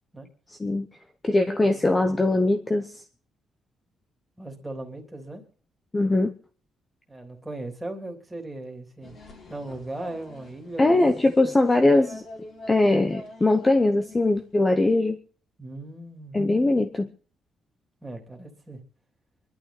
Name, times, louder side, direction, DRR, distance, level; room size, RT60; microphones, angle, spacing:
voice 1, 1.2-3.0 5.9-6.3 10.8-12.2 12.7-15.2 16.3-17.1, left 2 dB, 15° left, 7 dB, 0.9 m, -21 dB
voice 2, 4.4-5.4 7.1-9.1 9.5-11.1 15.6-16.4 18.0-18.8, right 2 dB, 5° right, 2 dB, 3.1 m, -38 dB
sound 1, 9.0-14.5, left 1 dB, 45° left, 3.8 m, -46 dB
24.0 x 11.5 x 4.2 m, 0.43 s
cardioid pair, 155°, 0 cm